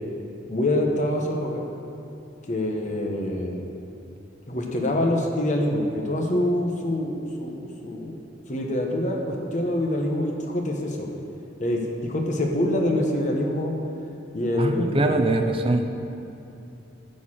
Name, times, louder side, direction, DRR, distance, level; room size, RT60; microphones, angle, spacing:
voice 1, 0.5-1.7 2.5-3.6 4.5-8.2 8.5-11.1 11.6-13.7 14.3-15.3, left 1 dB, 40° left, 1 dB, 1.1 m, -25 dB
voice 2, 14.6-15.9, right 2 dB, 30° right, 5 dB, 0.6 m, -22 dB
11.0 x 4.4 x 7.3 m, 2.8 s
head